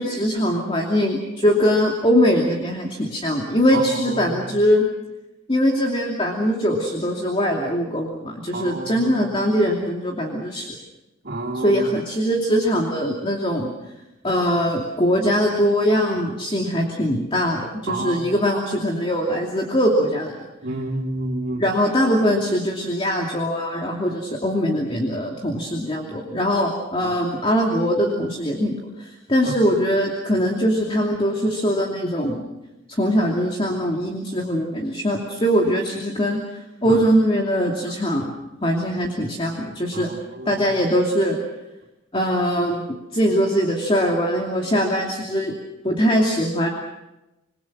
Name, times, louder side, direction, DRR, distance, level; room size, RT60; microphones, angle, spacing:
voice 1, 0.0-4.8 5.5-10.7 11.5-13.7 14.2-20.4 21.6-32.4 32.9-38.3 38.6-40.1 40.5-41.4 42.1-45.6 45.8-46.7, equal, 25° left, 0 dB, 2.7 m, -22 dB
voice 2, 3.7-4.4 8.5-9.1 11.2-11.8 17.9-18.3 20.6-21.6 27.0-27.1 29.4-29.5 36.9-37.0 39.9-40.6, right 2 dB, 55° right, -1 dB, 3.7 m, -29 dB
27.5 x 22.0 x 6.3 m, 0.97 s
head